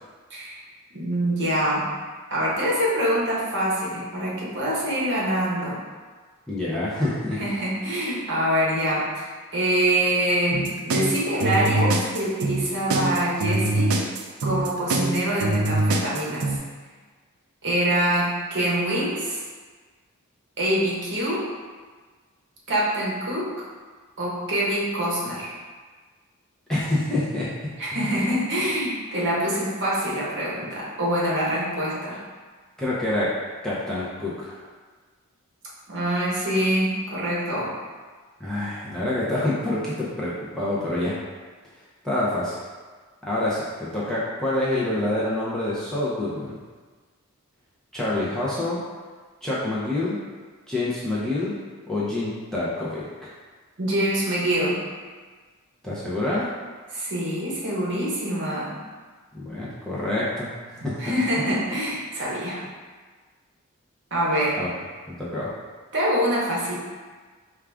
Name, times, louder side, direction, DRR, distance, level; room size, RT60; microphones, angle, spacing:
voice 1, 0.3-0.6 0.9-1.9 2.3-5.8 7.4-14.0 14.4-16.6 17.6-19.4 20.6-21.5 22.7-23.7 24.2-25.5 27.8-32.2 35.9-37.7 53.8-54.8 56.9-58.7 61.0-62.6 64.1-64.6 65.9-66.7, right 1 dB, 55° right, -5 dB, 1.0 m, -25 dB
voice 2, 6.5-7.4 26.7-28.1 32.8-33.4 33.6-34.6 38.4-41.2 42.0-42.6 43.2-46.6 47.9-48.8 49.4-50.2 50.7-51.5 51.9-53.3 55.8-56.5 59.3-60.5 60.8-61.4 64.6-64.7 65.1-65.5, left 1 dB, 5° left, -9 dB, 0.6 m, -27 dB
sound 1, 10.5-16.6, right 2 dB, 75° right, 0.4 m, -23 dB
4.7 x 2.4 x 3.4 m, 1.4 s
head